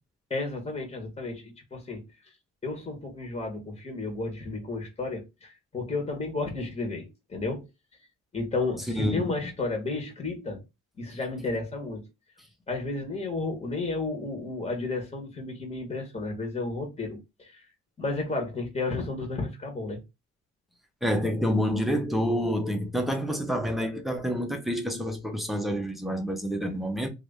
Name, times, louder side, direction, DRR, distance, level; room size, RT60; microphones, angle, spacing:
voice 1, 0.3-2.0 2.6-7.7 8.3-10.6 11.0-12.0 12.7-17.6 18.0-20.0, left 3 dB, 20° left, 1.4 m, -32 dB
voice 2, 9.0-9.3 21.0-27.1, equal, ahead, 0.9 m, -28 dB
2.9 x 2.7 x 3.4 m
cardioid pair, 90°, 30 cm